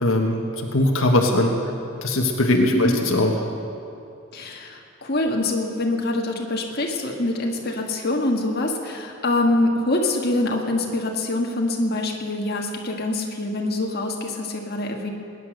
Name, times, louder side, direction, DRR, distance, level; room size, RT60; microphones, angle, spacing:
voice 1, 0.0-0.4 0.7-1.5 2.0-3.3, left 1 dB, 80° left, 2 dB, 1.4 m, -20 dB
voice 2, 4.3-15.1, left 2 dB, 50° left, 1 dB, 1.6 m, -25 dB
20.5 x 9.8 x 6.4 m, 2.6 s
head